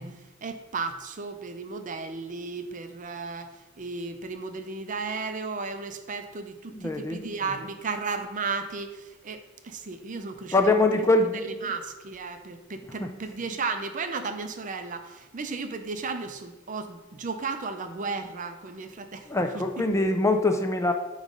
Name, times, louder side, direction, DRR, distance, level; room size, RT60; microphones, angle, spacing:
voice 1, 0.0-10.8 11.6-19.3 19.5-19.9, right 4 dB, 40° right, 8 dB, 0.5 m, -34 dB
voice 2, 6.7-7.2 10.5-11.4 13.0-13.2 19.3-20.9, left 2 dB, 15° left, 5 dB, 0.4 m, -23 dB
9.1 x 3.1 x 5.2 m, 1.2 s
head